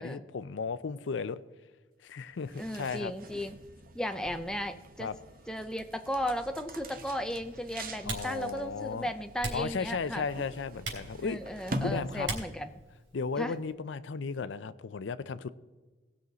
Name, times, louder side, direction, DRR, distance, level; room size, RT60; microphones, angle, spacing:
voice 1, 0.0-1.4 2.0-3.1 5.0-5.2 8.1-9.1 9.5-12.3 13.1-15.5, left 5 dB, 80° left, 16 dB, 0.5 m, -35 dB
sound 1, 2.3-12.7, right 1 dB, 50° right, 1.0 m, -44 dB
voice 2, 2.6-3.5 3.9-5.1 5.5-10.2 11.2-12.7 13.4-13.5, equal, 5° left, 7 dB, 0.5 m, -35 dB
Typing, 6.2-13.7, right 2 dB, 80° right, 3.5 m, -44 dB
18.5 x 6.3 x 4.1 m, 1.3 s
head